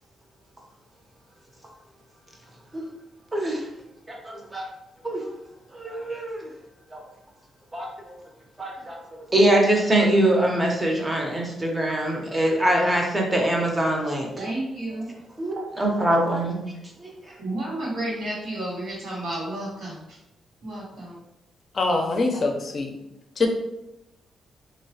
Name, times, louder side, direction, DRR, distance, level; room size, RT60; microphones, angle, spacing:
voice 1, 3.3-3.6 4.1-4.7 5.0-5.3 5.7-6.5 6.9-7.0 7.7-8.1 8.6-9.0 9.3-14.3 15.4-16.7 17.0-17.3, right 1 dB, 20° right, 0 dB, 0.7 m, -23 dB
voice 2, 14.4-15.1 17.4-20.2 20.6-21.2 23.4-23.5, right 1 dB, 85° right, -9 dB, 0.8 m, -31 dB
voice 3, 21.7-23.0 23.4-23.5, left 3 dB, 50° left, 3 dB, 0.5 m, -24 dB
2.9 x 2.0 x 2.7 m, 0.87 s
cardioid pair, 80°, 0 cm